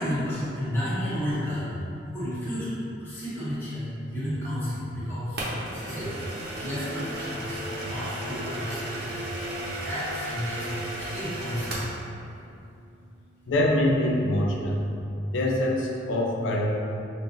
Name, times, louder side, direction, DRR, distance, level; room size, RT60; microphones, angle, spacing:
voice 1, 0.0-1.8 2.1-9.3 9.6-11.8, equal, 10° left, -12 dB, 1.2 m, -32 dB
sound 1, 5.4-12.0, right 1 dB, 55° right, 0.8 m, -34 dB
voice 2, 13.5-14.8 15.3-16.7, left 1 dB, 85° left, -1 dB, 0.5 m, -24 dB
5.3 x 2.4 x 2.6 m, 2.6 s
head